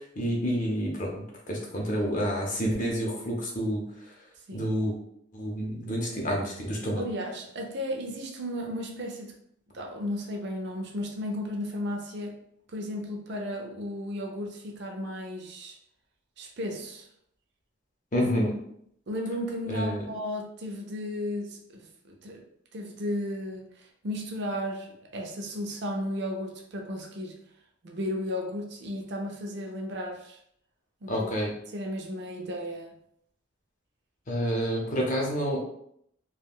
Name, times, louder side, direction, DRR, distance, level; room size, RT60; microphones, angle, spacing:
voice 1, 0.2-1.1 1.5-3.8 4.5-4.9 5.3-7.0 18.1-18.5 19.7-20.0 31.1-31.5 34.3-35.6, equal, 35° left, -1 dB, 0.6 m, -28 dB
voice 2, 7.0-9.3 9.7-12.4 12.7-15.8 16.4-17.1 19.1-22.4 22.7-27.4 27.8-30.4 31.0-31.3 31.7-33.0, left 1 dB, 50° right, 1 dB, 0.4 m, -34 dB
3.5 x 2.2 x 2.3 m, 0.71 s
head